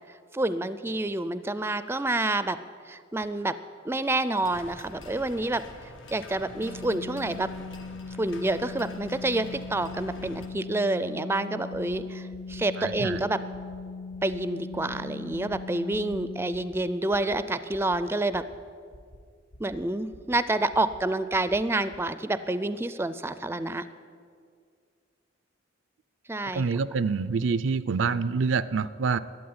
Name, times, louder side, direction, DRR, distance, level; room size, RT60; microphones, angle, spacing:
voice 1, 0.3-2.6 2.9-3.6 3.8-5.6 6.1-7.5 8.2-13.4 14.2-18.4 19.6-23.8 26.3-26.6, right 2 dB, 15° right, 13 dB, 0.4 m, -28 dB
sound 1, 4.4-10.5, left 2 dB, 90° left, 1.4 m, -47 dB
Organ, 6.3-16.9, left 4 dB, 55° left, 1.7 m, -40 dB
sound 2, 11.7-12.0 12.3-12.6 12.9-13.2 13.5-13.8 14.1-14.4 14.7-15.0 15.3-15.6 15.9-16.2 16.5-16.8 17.1-17.4 17.7-18.0 18.3-18.6 18.9-19.2 19.5-19.8 20.1-20.4 20.7-21.0 21.3-21.6 21.9-22.0, equal, 70° left, 1.1 m, -50 dB
voice 2, 12.8-13.2 26.5-29.2, right 5 dB, 75° right, 15 dB, 0.5 m, -26 dB
12.5 x 8.3 x 9.5 m, 2.1 s
head